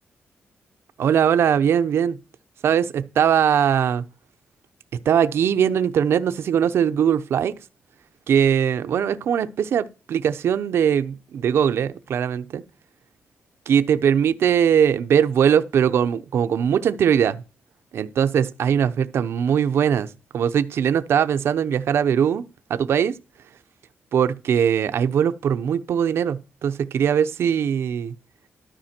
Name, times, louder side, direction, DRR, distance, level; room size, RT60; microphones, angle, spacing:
voice 1, 1.0-2.2 2.6-4.0 5.0-7.5 8.3-12.6 13.7-17.4 17.9-22.4 22.7-23.1 24.1-28.1, right 8 dB, 75° right, 0.8 m, -20 dB
13.0 x 5.5 x 4.4 m
wide cardioid pair, 135°, 4 cm